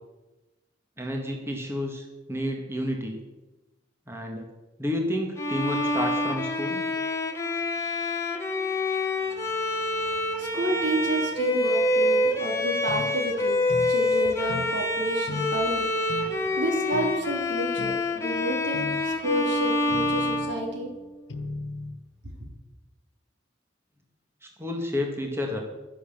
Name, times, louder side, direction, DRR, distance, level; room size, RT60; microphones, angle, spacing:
voice 1, 1.0-3.2 4.1-4.4 4.8-6.9 24.4-25.6, left 1 dB, 15° right, 2 dB, 1.9 m, -30 dB
Bowed string instrument, 5.4-21.2, left 1 dB, 15° left, 1.4 m, -27 dB
voice 2, 9.9-16.0 16.2-20.9, right 1 dB, 75° right, 2 dB, 2.9 m, -30 dB
sound 1, 12.9-13.1 13.7-13.9 14.5-14.7 15.3-15.5 16.1-16.3 16.9-17.1 17.8-18.0 18.7-19.0 19.9-20.5 21.3-22.0, left 2 dB, 90° left, 1.3 m, -36 dB
11.5 x 11.0 x 7.4 m, 1.1 s
head